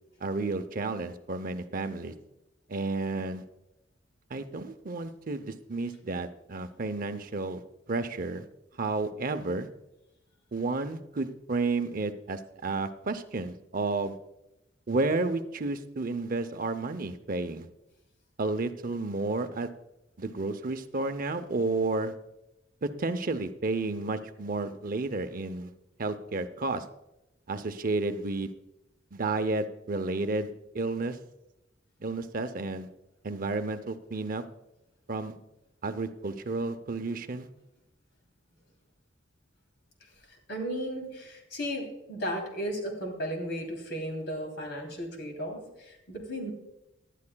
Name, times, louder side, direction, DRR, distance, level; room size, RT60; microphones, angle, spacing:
voice 1, 0.2-2.1 2.7-3.4 4.3-7.6 7.9-8.4 8.8-9.7 10.5-14.2 14.9-17.7 18.4-19.7 20.2-22.1 22.8-25.7 26.0-26.8 27.5-28.5 29.1-31.2 32.0-32.9 33.2-34.4 35.1-35.3 35.8-37.5, right 3 dB, 45° right, 9 dB, 0.6 m, -31 dB
voice 2, 40.3-46.5, equal, 60° left, 2 dB, 3.0 m, -35 dB
18.5 x 11.5 x 2.3 m, 0.88 s
head